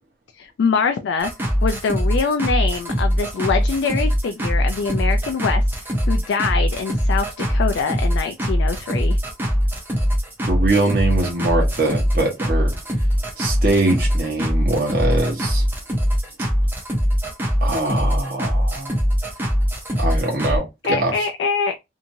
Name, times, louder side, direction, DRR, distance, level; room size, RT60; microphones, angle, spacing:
voice 1, 0.4-1.3 1.6-5.6 6.1-9.2 20.8-21.7, left 5 dB, 80° left, 0.3 m, -24 dB
sound 1, 1.2-20.6, equal, 10° right, 0.7 m, -21 dB
voice 2, 10.5-12.7 13.4-15.6 17.6-19.0 20.0-21.3, right 2 dB, 50° right, 1.0 m, -22 dB
2.8 x 2.6 x 2.6 m
head